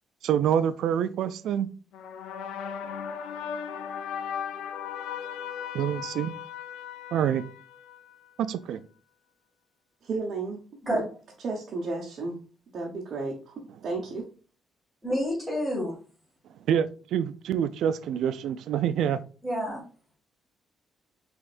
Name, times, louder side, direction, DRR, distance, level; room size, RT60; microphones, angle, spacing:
voice 1, 0.2-1.7 5.7-6.4 7.1-7.4 8.4-8.8 16.7-19.2, right 9 dB, 80° right, 0.4 m, -26 dB
sound 1, 1.9-8.3, left 8 dB, 85° left, 0.4 m, -37 dB
voice 2, 10.0-10.6 10.9-11.0 11.4-12.4 12.7-14.2, right 3 dB, 60° right, 1.0 m, -33 dB
voice 3, 15.0-15.9 19.4-19.8, equal, 10° right, 2.2 m, -28 dB
5.1 x 3.5 x 2.5 m
cardioid pair, 90°, 0 cm